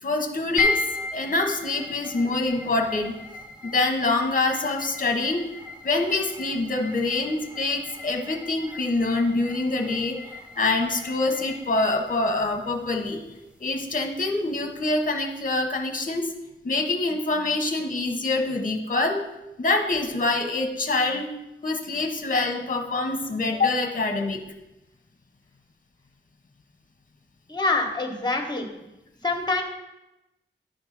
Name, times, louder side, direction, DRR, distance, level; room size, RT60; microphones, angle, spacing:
voice 1, 0.0-0.8 1.1-3.2 3.6-5.4 5.8-10.2 10.6-13.2 13.6-16.3 16.6-19.2 19.6-21.3 21.6-24.4, left 2 dB, 40° left, 4 dB, 1.0 m, -25 dB
sound 1, 0.6-15.0, left 3 dB, 5° right, 1.0 m, -36 dB
voice 2, 27.5-28.7 29.2-29.6, left 3 dB, 20° left, 3 dB, 1.3 m, -25 dB
10.0 x 3.5 x 5.9 m, 0.95 s
wide cardioid pair, 70°, 21 cm